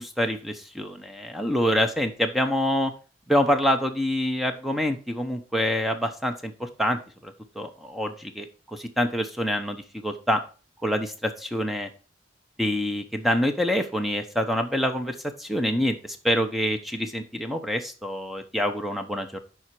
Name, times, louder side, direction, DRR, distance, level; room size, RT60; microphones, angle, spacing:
voice 1, 0.0-2.9 3.3-10.4 10.8-11.9 12.6-19.4, equal, ahead, 6 dB, 0.9 m, -26 dB
7.8 x 5.1 x 4.4 m, 0.35 s
head